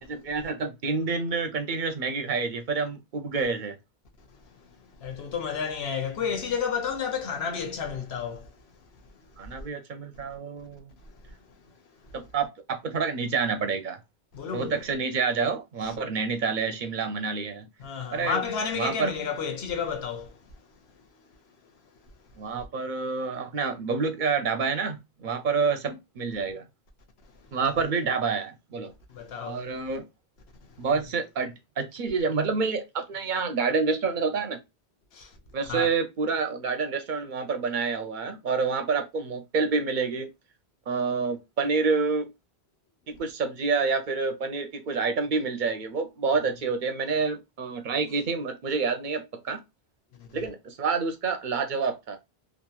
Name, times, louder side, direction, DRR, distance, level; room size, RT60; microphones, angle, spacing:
voice 1, 0.0-3.7 9.4-10.9 12.1-14.0 14.5-17.7 18.1-18.4 18.7-19.1 22.4-26.7 27.5-28.9 29.4-30.1 30.8-34.6 35.5-40.3 40.9-42.3 43.1-49.6 50.3-52.2, right 4 dB, 60° right, 0.6 m, -28 dB
voice 2, 4.5-8.5 9.1-9.3 11.1-11.4 11.6-11.8 12.0-12.1 14.3-14.8 15.8-15.9 17.8-20.4 27.4-27.9 29.1-29.7 30.7-30.8 35.1-35.4 35.7-35.9 50.1-50.4, left 6 dB, 85° left, 1.0 m, -32 dB
2.9 x 2.5 x 2.2 m
omnidirectional pair, 1.0 m